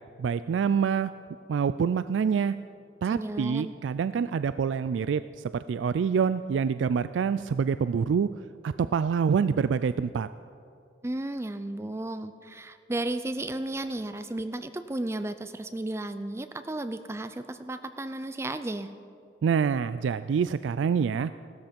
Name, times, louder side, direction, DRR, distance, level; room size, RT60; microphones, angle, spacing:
voice 1, 0.2-1.1 1.5-2.5 3.0-8.3 8.6-10.3 19.4-21.3, right 6 dB, 90° right, 13 dB, 0.3 m, -26 dB
voice 2, 3.1-3.7 11.0-18.9, right 1 dB, 15° right, 10 dB, 0.4 m, -34 dB
16.5 x 13.0 x 5.2 m, 2.5 s
head